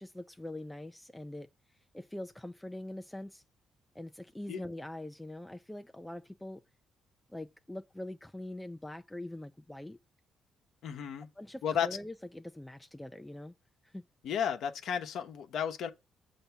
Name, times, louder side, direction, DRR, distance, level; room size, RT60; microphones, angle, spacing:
voice 1, 0.0-1.5 1.9-3.4 3.9-6.6 7.3-10.0 11.4-13.5 13.8-14.0, left 1 dB, 10° left, 0.4 m, -43 dB
voice 2, 10.8-11.3 11.6-11.9 14.2-15.9, left 8 dB, 75° left, 0.9 m, -33 dB
6.8 x 2.7 x 5.6 m
cardioid pair, 90°, 0 cm